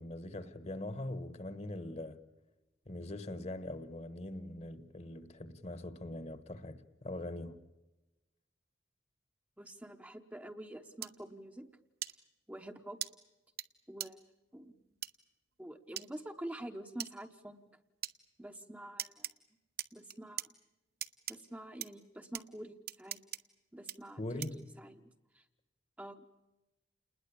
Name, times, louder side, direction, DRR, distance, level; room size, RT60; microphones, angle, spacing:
voice 1, 0.0-2.2 2.9-7.6 24.2-24.6, left 1 dB, 35° left, 1.2 m, -42 dB
voice 2, 9.6-11.7 12.5-13.0 13.9-14.2 14.5-14.7 15.6-17.8 18.4-19.2 19.9-20.5 21.3-23.2 23.7-25.1 25.3-25.4 26.0-26.3, right 1 dB, 10° right, 0.9 m, -47 dB
sound 1, 11.0-11.1 12.0-12.1 13.0-13.1 13.6-13.7 14.0-14.1 15.0-15.1 16.0-16.1 17.0-17.1 18.0-18.1 19.0-19.3 19.8-20.5 21.0-21.4 21.8-21.9 22.3-22.4 22.9-23.4 23.9-24.0 24.4-24.6, right 12 dB, 55° right, 0.9 m, -39 dB
28.5 x 20.5 x 8.5 m
head